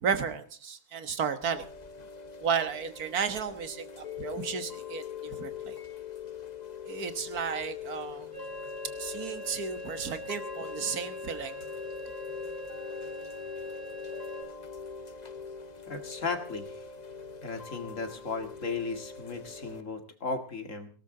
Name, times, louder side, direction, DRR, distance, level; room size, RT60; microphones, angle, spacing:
voice 1, 0.0-1.7 2.4-5.8 6.9-8.3 9.0-11.5, right 6 dB, 75° right, 9 dB, 1.8 m, -33 dB
Chime / Rain, 1.4-19.8, left 6 dB, 35° left, 0.8 m, -42 dB
sound 1, 8.3-14.4, left 1 dB, 60° right, 8.5 m, -42 dB
voice 2, 15.9-16.8 17.4-20.9, left 4 dB, 55° left, 6 dB, 2.3 m, -35 dB
19.0 x 17.5 x 3.8 m, 0.40 s
omnidirectional pair, 1.6 m